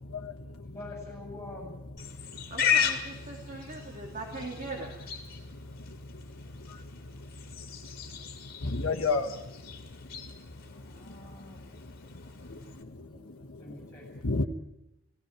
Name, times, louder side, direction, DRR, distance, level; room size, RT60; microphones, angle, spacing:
voice 1, 0.6-1.7 13.6-14.5, left 2 dB, 15° left, -1 dB, 8.0 m, -44 dB
Livestock farm animals working animals, 2.0-12.8, left 7 dB, 45° left, 2.6 m, -36 dB
voice 2, 2.5-5.0, right 2 dB, 35° right, 0 dB, 2.8 m, -40 dB
voice 3, 8.6-9.3 12.5-13.1 13.7-13.8 14.2-14.4, left 3 dB, 70° left, 1 dB, 1.4 m, -30 dB
18.5 x 16.5 x 9.3 m, 0.87 s
head